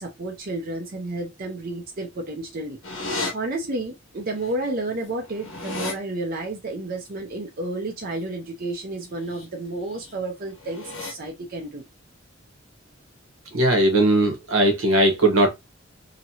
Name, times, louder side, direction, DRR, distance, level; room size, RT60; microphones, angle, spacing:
voice 1, 0.0-2.8 3.1-11.8, right 2 dB, 45° right, 0.7 m, -31 dB
sound 1, 2.8-3.3 4.5-4.6 4.9-5.9 9.1-9.4 9.8-10.1 10.6-11.1, left 2 dB, 75° left, 1.4 m, -33 dB
voice 2, 13.5-15.5, right 1 dB, 80° right, 1.1 m, -19 dB
2.9 x 2.7 x 2.8 m
head